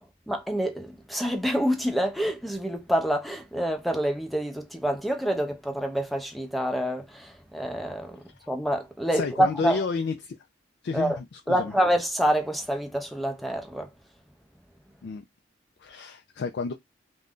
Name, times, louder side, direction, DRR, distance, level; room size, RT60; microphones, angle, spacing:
voice 1, 0.3-8.2 8.5-9.8 10.9-11.2 11.5-13.9, equal, ahead, 0.5 m, -27 dB
voice 2, 9.1-10.4 10.8-11.7 15.0-15.2 15.8-16.7, left 4 dB, 60° left, 0.3 m, -31 dB
2.5 x 2.2 x 3.5 m
head